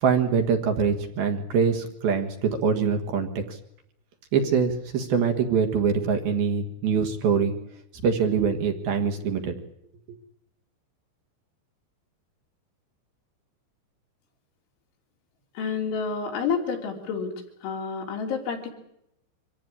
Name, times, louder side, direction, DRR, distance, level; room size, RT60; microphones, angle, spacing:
voice 1, 0.0-3.6 4.3-7.5 8.0-9.5, right 6 dB, 60° right, 5 dB, 3.1 m, -24 dB
voice 2, 15.6-17.3 17.6-18.7, left 5 dB, 75° left, 2 dB, 5.7 m, -29 dB
25.0 x 15.5 x 9.8 m, 0.78 s
omnidirectional pair, 5.5 m